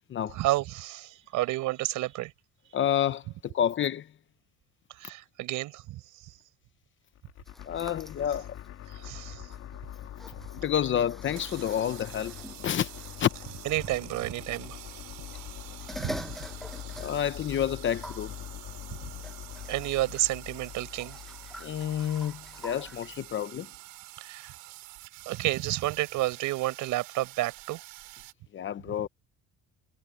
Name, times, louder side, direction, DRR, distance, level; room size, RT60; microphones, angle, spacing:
voice 1, 0.3-2.3 5.0-6.3 8.9-9.5 13.7-14.8 16.0-16.4 19.7-21.2 24.2-24.5 25.3-27.8, right 17 dB, 65° right, 5.4 m, -31 dB
voice 2, 2.7-4.1 7.7-8.6 10.6-12.4 12.6-12.9 13.2-13.3 17.0-18.3 21.6-23.7 28.5-29.1, left 10 dB, 35° left, 0.9 m, -29 dB
sound 1, 7.1-23.3, left 11 dB, 50° left, 3.4 m, -44 dB
sound 2, 7.5-14.1 15.1-17.5 17.8-18.3 19.2-23.2, equal, ahead, 6.3 m, -46 dB
sound 3, 11.3-28.3, right 22 dB, 85° right, 5.4 m, -48 dB
cardioid pair, 140°, 33 cm